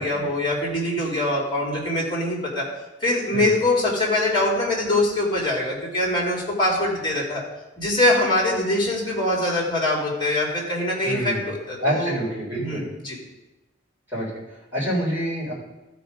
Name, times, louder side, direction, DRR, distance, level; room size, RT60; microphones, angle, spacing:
voice 1, 0.0-2.6 3.0-7.4 7.8-12.1 12.5-13.2, left 1 dB, 25° left, -2 dB, 2.7 m, -23 dB
voice 2, 11.0-11.5 11.8-12.9 14.1-15.5, equal, 10° right, -7 dB, 3.7 m, -27 dB
13.5 x 4.6 x 5.1 m, 1.0 s
head